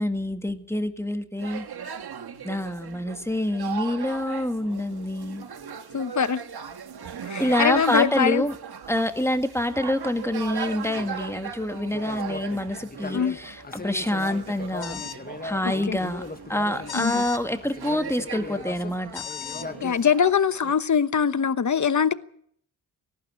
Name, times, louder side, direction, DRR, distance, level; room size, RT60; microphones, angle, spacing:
voice 1, 0.0-1.7 2.4-5.5 7.4-8.5 8.9-15.0 15.4-16.2 16.5-19.2, left 1 dB, 5° left, 1.9 m, -27 dB
sound 1, 1.4-20.7, right 7 dB, 65° right, 1.7 m, -39 dB
voice 2, 5.9-6.4 7.3-8.4 13.1-13.4 15.6-16.0 16.9-17.2 19.8-22.1, left 7 dB, 45° left, 1.1 m, -23 dB
sound 2, 10.9-19.9, left 3 dB, 20° left, 1.3 m, -39 dB
sound 3, 14.8-15.2 16.9-17.4 19.1-19.7, left 9 dB, 65° left, 2.1 m, -36 dB
18.5 x 15.0 x 9.7 m
cardioid pair, 85°, 41 cm